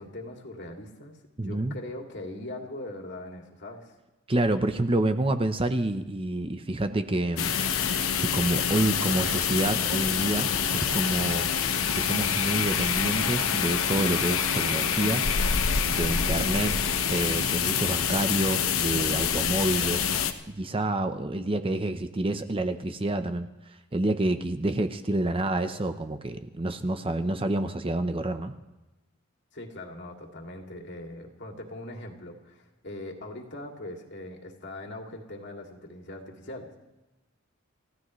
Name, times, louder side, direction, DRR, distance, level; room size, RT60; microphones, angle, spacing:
voice 1, 0.0-4.0 25.3-25.4 29.5-36.7, left 1 dB, 55° left, 1 dB, 2.6 m, -41 dB
voice 2, 1.4-1.7 4.3-7.5 8.2-11.5 11.9-15.3 15.9-16.7 17.1-20.1 20.5-28.5, right 1 dB, 25° right, 8 dB, 0.8 m, -28 dB
sound 1, 7.4-20.3, left 7 dB, 85° left, 1.0 m, -26 dB
29.0 x 15.0 x 3.2 m, 1.0 s
head